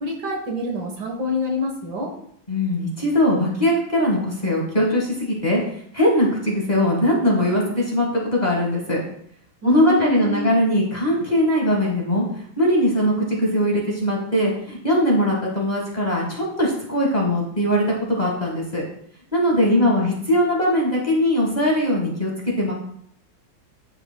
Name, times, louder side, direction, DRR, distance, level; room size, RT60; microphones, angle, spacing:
voice 1, 0.0-2.1 9.6-10.6 19.7-20.2, left 2 dB, 60° right, 1 dB, 1.7 m, -27 dB
voice 2, 2.5-5.6 5.9-9.0 9.6-12.2 12.6-18.8 19.3-22.7, equal, 25° left, -3 dB, 1.5 m, -20 dB
9.9 x 6.6 x 2.2 m, 0.67 s
omnidirectional pair, 2.1 m